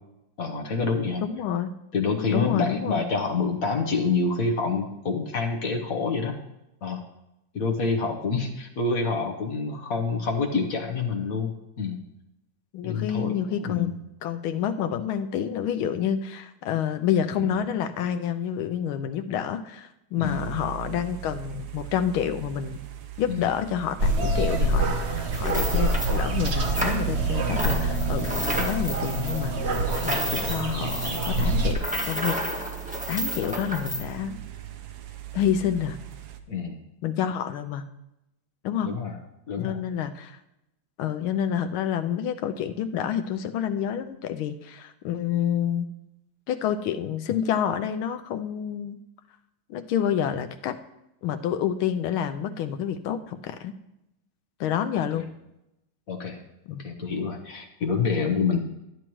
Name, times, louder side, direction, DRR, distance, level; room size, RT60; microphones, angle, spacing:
voice 1, 0.4-1.2 1.9-6.4 6.8-7.1 7.5-11.5 11.8-12.0 12.8-13.9 17.4-17.6 20.2-20.5 23.3-23.5 36.5-36.8 38.8-39.2 39.5-39.8 55.1-55.2 56.1-56.4 56.8-58.6, left 4 dB, 50° left, 4 dB, 1.2 m, -27 dB
voice 2, 1.2-1.7 2.3-3.0 12.7-13.9 14.2-22.8 23.2-29.7 30.0-32.4 33.1-34.4 35.3-36.0 37.0-37.9 38.6-38.9 39.6-40.4 41.0-45.9 46.5-49.0 49.7-50.8 51.2-53.7 54.6-55.3 56.7-56.9, left 9 dB, 85° left, 9 dB, 1.5 m, -28 dB
sound 1, 20.2-36.4, right 12 dB, 65° right, 1.1 m, -36 dB
sound 2, 24.0-31.7, right 1 dB, 50° right, 0.8 m, -26 dB
sound 3, 25.3-27.3 27.5-34.0, equal, 5° right, 0.8 m, -32 dB
12.0 x 11.0 x 3.1 m, 0.88 s
omnidirectional pair, 2.3 m